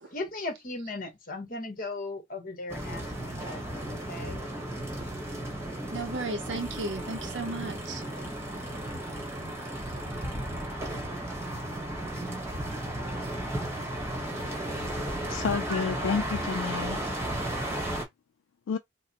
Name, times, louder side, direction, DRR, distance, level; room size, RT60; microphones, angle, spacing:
voice 1, 0.1-4.4, left 2 dB, 45° left, 1.1 m, -37 dB
sound 1, 2.7-18.0, right 1 dB, 15° right, 1.1 m, -34 dB
voice 2, 5.9-8.0, right 2 dB, 65° right, 0.6 m, -34 dB
voice 3, 15.3-17.0 18.7-18.8, left 6 dB, 90° left, 0.4 m, -30 dB
4.8 x 2.0 x 2.9 m
head